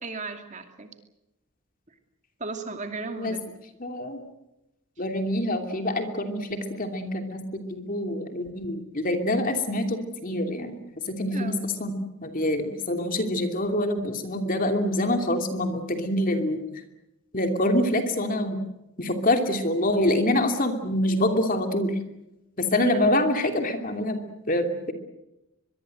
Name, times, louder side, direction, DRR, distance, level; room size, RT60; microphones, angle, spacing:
voice 1, 0.0-0.9 2.4-3.4 11.3-11.7 22.8-23.2, right 3 dB, 35° right, 6 dB, 2.6 m, -35 dB
voice 2, 3.8-4.2 5.0-10.8 11.1-11.9 12.2-16.6 17.3-18.6 19.0-21.9 22.6-24.2 24.5-24.9, left 1 dB, 40° left, 6 dB, 2.8 m, -26 dB
23.0 x 23.0 x 7.9 m, 0.91 s
head